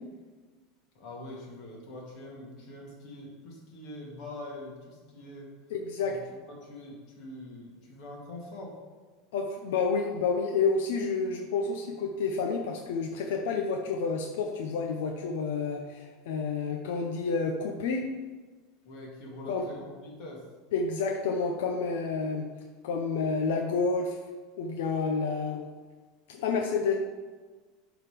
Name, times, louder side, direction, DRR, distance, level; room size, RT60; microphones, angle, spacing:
voice 1, 0.9-5.5 6.0-8.7 18.8-20.4, left 1 dB, 40° left, -3 dB, 2.4 m, -44 dB
voice 2, 5.7-6.2 9.3-18.1 19.5-19.7 20.7-22.5 22.8-24.2 24.6-25.6 26.3-26.9, left 4 dB, 75° left, 1 dB, 0.9 m, -29 dB
11.0 x 4.0 x 5.3 m, 1.4 s
supercardioid pair, 180°, 0 cm